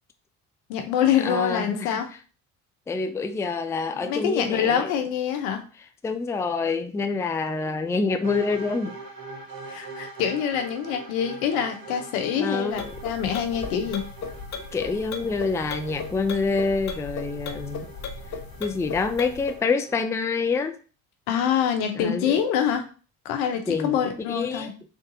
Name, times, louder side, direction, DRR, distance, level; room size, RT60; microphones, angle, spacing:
voice 1, 0.7-2.1 3.9-5.6 9.7-14.0 21.3-22.8 23.2-24.7, left 8 dB, 85° left, 5 dB, 0.8 m, -25 dB
voice 2, 1.2-2.0 2.9-4.9 6.0-8.9 12.3-12.9 14.7-17.9 18.6-20.8 21.9-22.4 23.7-24.0 24.3-24.7, left 4 dB, 5° left, 7 dB, 0.4 m, -27 dB
sound 1, 8.2-20.0, right 3 dB, 55° right, 1.3 m, -43 dB
sound 2, 12.7-19.6, left 4 dB, 45° left, 0.8 m, -36 dB
3.5 x 2.6 x 3.7 m, 0.37 s
hypercardioid pair, 65°, 41 cm